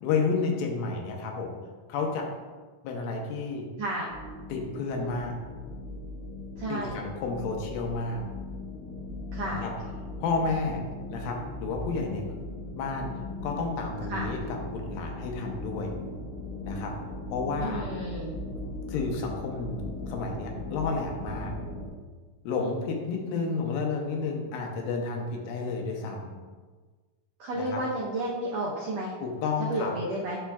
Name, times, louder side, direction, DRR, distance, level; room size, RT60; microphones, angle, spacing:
voice 1, 0.0-1.6 1.9-2.2 2.8-3.7 4.5-5.4 6.7-8.2 9.4-9.7 10.2-10.8 11.1-12.2 12.8-13.1 13.4-15.9 16.6-16.9 17.3-18.1 18.4-18.5 18.9-19.8 20.1-21.5 22.4-26.3 27.6-27.8 29.2-29.9, left 4 dB, 80° left, 1 dB, 2.6 m, -31 dB
voice 2, 3.8-4.1 6.6-7.0 9.3-9.7 14.1-14.3 17.6-18.3 27.4-29.1 29.7-30.4, right 1 dB, 80° right, -4 dB, 1.5 m, -32 dB
sound 1, 4.1-21.9, left 2 dB, 60° left, 1.5 m, -38 dB
8.7 x 5.8 x 2.3 m, 1.4 s
omnidirectional pair, 4.2 m